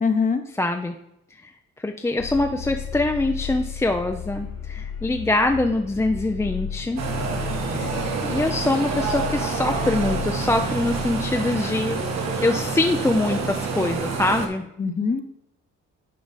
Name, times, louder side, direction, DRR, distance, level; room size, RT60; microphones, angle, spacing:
voice 1, 0.0-0.4 7.6-8.0 14.8-15.2, left 5 dB, 25° left, 8 dB, 0.9 m, -24 dB
voice 2, 0.6-0.9 1.4-1.5 1.8-7.0 7.7-7.9 8.2-12.0 12.4-14.6, left 2 dB, 10° left, 4 dB, 0.4 m, -24 dB
sound 1, 2.2-11.3, left 7 dB, 80° left, 3.0 m, -34 dB
sound 2, 7.0-14.5, right 4 dB, 60° right, 1.4 m, -27 dB
9.4 x 4.8 x 4.1 m, 0.81 s
cardioid pair, 90°, 30 cm